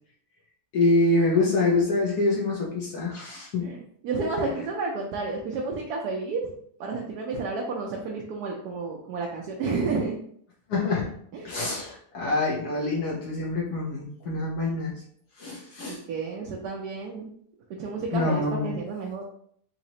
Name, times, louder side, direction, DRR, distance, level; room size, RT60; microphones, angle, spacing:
voice 1, 0.7-3.7 10.7-11.1 11.4-15.0 15.4-16.0 18.1-18.7, left 2 dB, 70° left, -4 dB, 1.3 m, -25 dB
voice 2, 3.6-6.5 6.8-10.2 11.3-11.5 15.9-17.3 17.8-19.2, right 3 dB, 75° right, -1 dB, 1.1 m, -31 dB
4.0 x 2.9 x 2.7 m, 0.63 s
omnidirectional pair, 1.8 m